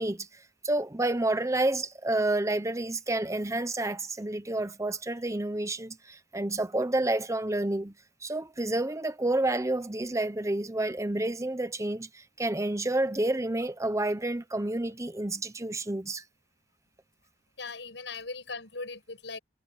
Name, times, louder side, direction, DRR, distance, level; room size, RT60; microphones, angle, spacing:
voice 1, 0.0-7.9 8.2-16.2, right 2 dB, 15° right, 1.0 m, -29 dB
voice 2, 17.6-19.4, left 3 dB, 85° left, 7.7 m, -39 dB
head